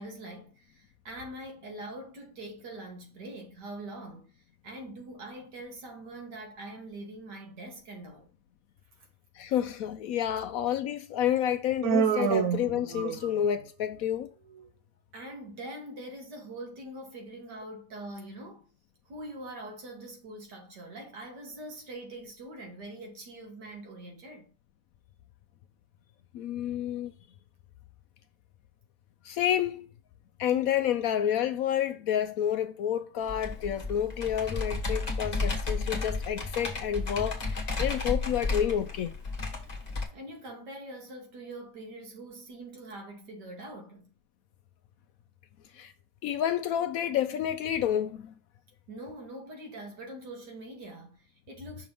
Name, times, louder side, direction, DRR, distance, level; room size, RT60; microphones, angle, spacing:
voice 1, 0.0-4.3 4.6-8.3 15.1-18.7 19.1-24.5 40.1-44.1 48.9-51.9, right 1 dB, 85° right, 2.1 m, -43 dB
voice 2, 9.4-14.3 26.3-27.1 29.2-29.9 30.4-39.1 45.7-45.9 46.2-48.3, left 10 dB, 70° left, 0.9 m, -29 dB
Human voice, 11.8-13.5, right 7 dB, 65° right, 1.1 m, -27 dB
Computer keyboard, 33.3-40.0, left 3 dB, 25° left, 1.3 m, -33 dB
6.0 x 3.1 x 5.3 m
omnidirectional pair, 1.8 m